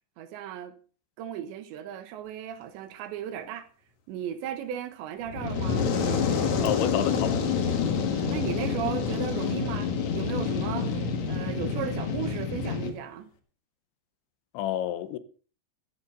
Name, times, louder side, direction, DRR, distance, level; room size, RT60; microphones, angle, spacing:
voice 1, 0.2-0.7 1.2-3.7 4.1-6.0 8.0-13.3, right 9 dB, 75° right, 3.4 m, -36 dB
Fire, 5.3-12.9, left 5 dB, 50° left, 2.4 m, -28 dB
voice 2, 6.6-7.5 14.5-15.2, left 11 dB, 80° left, 3.2 m, -29 dB
15.0 x 14.5 x 3.9 m
omnidirectional pair, 5.3 m